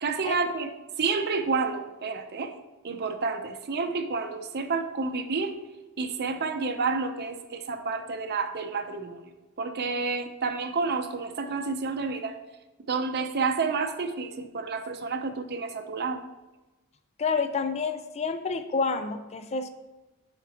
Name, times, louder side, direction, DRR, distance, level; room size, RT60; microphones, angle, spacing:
voice 1, 0.0-0.7 1.0-2.5 2.8-5.6 6.0-9.2 9.6-12.4 12.9-16.2, right 4 dB, 50° right, 6 dB, 0.7 m, -29 dB
voice 2, 17.2-19.7, left 4 dB, 30° left, 9 dB, 0.4 m, -28 dB
9.8 x 5.9 x 2.9 m, 1.1 s
head